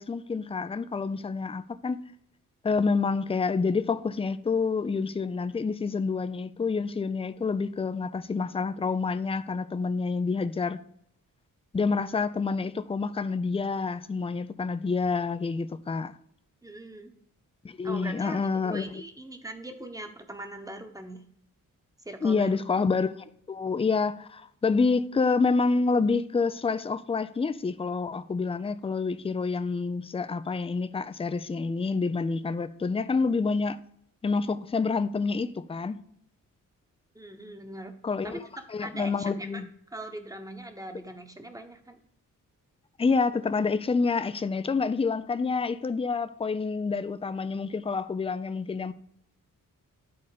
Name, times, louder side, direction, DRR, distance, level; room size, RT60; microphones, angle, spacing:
voice 1, 0.0-2.0 2.6-10.8 11.7-16.1 17.6-18.9 22.2-33.8 34.2-36.0 38.0-38.4 38.7-39.7 43.0-48.9, left 4 dB, 15° left, 0.4 m, -28 dB
voice 2, 16.6-17.1 17.8-21.2 22.0-22.6 37.1-37.9 38.2-39.6 39.9-42.0, right 1 dB, 10° right, 1.1 m, -41 dB
10.5 x 4.1 x 5.0 m
cardioid pair, 85°, 33 cm